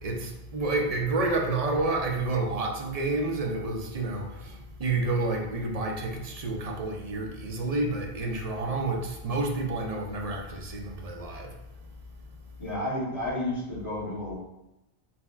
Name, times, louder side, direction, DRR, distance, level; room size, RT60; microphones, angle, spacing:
voice 1, 0.0-11.5, right 2 dB, 45° right, 1 dB, 0.6 m, -29 dB
voice 2, 12.6-14.3, left 1 dB, 30° left, -8 dB, 1.6 m, -31 dB
4.3 x 4.2 x 2.4 m, 0.94 s
omnidirectional pair, 1.0 m